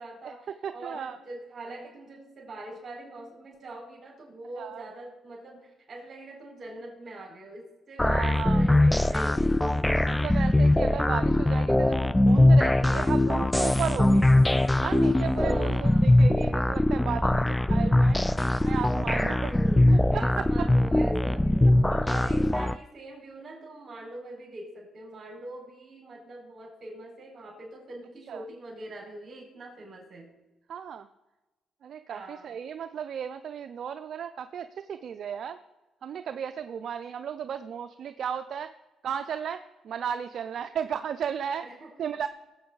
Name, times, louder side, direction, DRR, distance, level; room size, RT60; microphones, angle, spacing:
voice 1, 0.0-9.7 15.3-16.2 19.2-21.7 22.0-30.4 32.1-32.6 41.6-42.1, right 2 dB, 40° right, -1 dB, 4.5 m, -43 dB
voice 2, 0.6-1.2 4.6-4.8 8.0-8.9 10.1-14.3 14.8-18.2 18.6-19.4 19.9-20.5 21.9-22.0 28.3-28.4 30.7-31.1 31.8-35.6 36.0-38.7 39.0-41.7 42.0-42.3, right 8 dB, 60° right, 10 dB, 0.4 m, -35 dB
sound 1, 8.0-22.8, left 1 dB, 10° left, 0.3 m, -22 dB
18.5 x 7.9 x 4.0 m, 1.1 s
cardioid pair, 90°, 0 cm